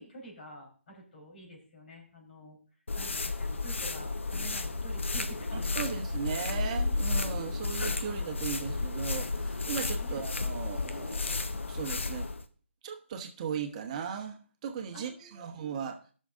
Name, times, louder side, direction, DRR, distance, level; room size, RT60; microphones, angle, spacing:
voice 1, 0.0-2.6 3.0-5.7 10.0-10.2 14.9-15.4, right 1 dB, 55° left, 4.2 m, -49 dB
sound 1, 2.9-12.4, left 3 dB, 70° left, 0.9 m, -32 dB
voice 2, 5.5-11.4 11.7-12.3 12.8-16.0, right 7 dB, 30° right, 1.1 m, -37 dB
18.0 x 6.5 x 2.7 m
figure-of-eight pair, 145°, 7 cm